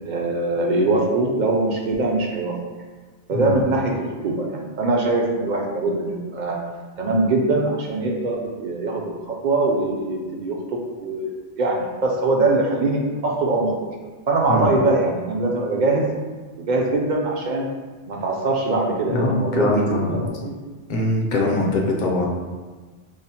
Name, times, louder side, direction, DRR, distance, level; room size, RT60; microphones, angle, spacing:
voice 1, 0.0-2.5 3.3-6.6 7.0-13.7 14.3-16.1 16.6-17.6 18.1-20.6, right 2 dB, 60° right, 0 dB, 0.5 m, -22 dB
voice 2, 19.1-20.2 20.9-22.3, left 2 dB, 55° left, -1 dB, 0.6 m, -22 dB
4.8 x 2.0 x 2.8 m, 1.3 s
omnidirectional pair, 1.1 m